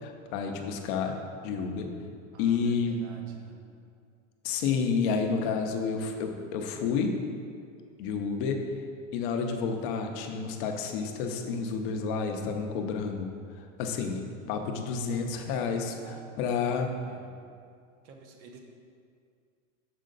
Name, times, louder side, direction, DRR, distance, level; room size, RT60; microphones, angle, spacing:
voice 1, 0.0-1.2 1.4-1.9 2.4-3.0 4.4-7.2 8.0-8.7 9.1-16.9, left 5 dB, 40° left, 4 dB, 0.6 m, -30 dB
voice 2, 2.3-3.6 15.9-16.3 17.1-17.4 18.0-18.6, right 4 dB, 40° right, 3 dB, 0.7 m, -51 dB
6.5 x 4.3 x 3.8 m, 2.3 s
supercardioid pair, 150°, 40 cm